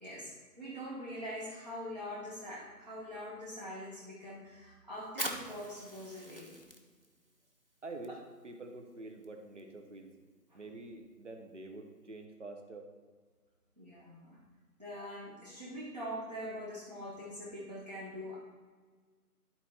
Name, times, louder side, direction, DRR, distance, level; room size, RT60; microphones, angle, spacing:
voice 1, 0.0-6.6 10.5-10.6 13.8-14.4 14.8-18.4, equal, 25° right, -8 dB, 0.9 m, -43 dB
Fire, 5.0-12.2, right 1 dB, 35° left, 0.5 m, -47 dB
voice 2, 7.8-8.1 8.4-10.1 10.5-12.9, right 2 dB, 50° right, 3 dB, 1.1 m, -46 dB
11.5 x 4.3 x 4.4 m, 1.5 s
figure-of-eight pair, 175°, 48 cm